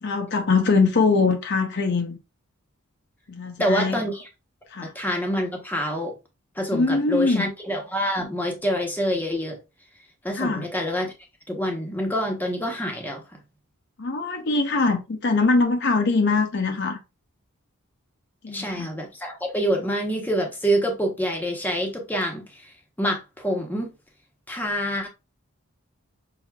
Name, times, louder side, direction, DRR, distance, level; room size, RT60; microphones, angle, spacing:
voice 1, 0.0-2.2 3.3-4.0 4.7-4.9 6.7-7.5 10.4-10.7 14.0-17.0 18.4-18.9, left 3 dB, 50° left, 0.6 m, -22 dB
voice 2, 3.6-4.2 4.8-6.2 6.6-9.6 10.2-11.1 11.5-13.2 18.5-22.7 23.0-23.9 24.5-25.1, equal, 10° left, 0.8 m, -26 dB
5.8 x 2.7 x 2.2 m
head